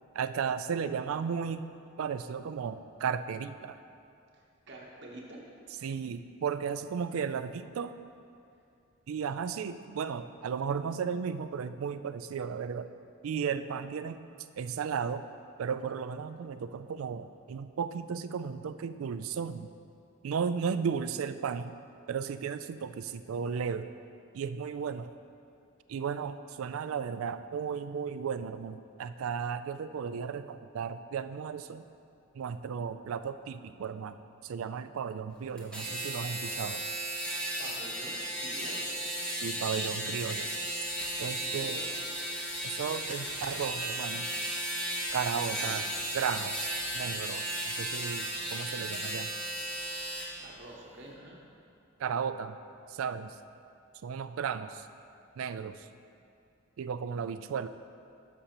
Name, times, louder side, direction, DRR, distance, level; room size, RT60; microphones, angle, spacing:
voice 1, 0.1-1.7 2.0-3.8 5.8-7.9 9.1-12.9 13.2-14.2 14.6-15.3 15.6-19.7 20.2-21.8 22.1-23.9 24.3-25.1 25.9-31.9 32.3-36.8 39.3-40.6 41.2-41.8 42.6-44.3 45.1-45.9 46.1-49.3 52.0-52.6 52.9-53.4 54.0-54.9 55.4-55.9 56.8-57.7, right 6 dB, 85° right, 12 dB, 0.3 m, -34 dB
voice 2, 4.3-5.4 37.6-39.0 41.4-41.9 45.6-45.8 50.4-51.4, right 2 dB, 55° right, -4 dB, 0.9 m, -47 dB
sound 1, 35.6-50.3, right 1 dB, 5° left, 1.2 m, -35 dB
11.5 x 6.7 x 2.9 m, 2.5 s
head